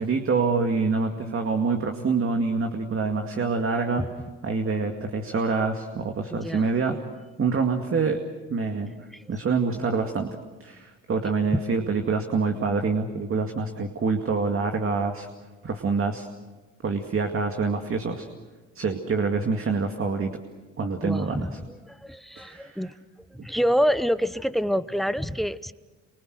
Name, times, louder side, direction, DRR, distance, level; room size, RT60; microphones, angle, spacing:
voice 1, 0.0-4.1 4.4-7.0 7.4-8.2 8.5-8.9 9.3-15.3 15.6-16.3 16.8-18.3 18.8-20.4 20.8-21.5 22.4-22.8, right 4 dB, 45° right, 4 dB, 2.2 m, -26 dB
voice 2, 6.3-6.6 9.1-9.3 21.0-21.5 21.8-22.9 23.3-25.7, equal, ahead, 15 dB, 0.8 m, -27 dB
27.5 x 24.5 x 6.5 m, 1.3 s
cardioid pair, 85°, 31 cm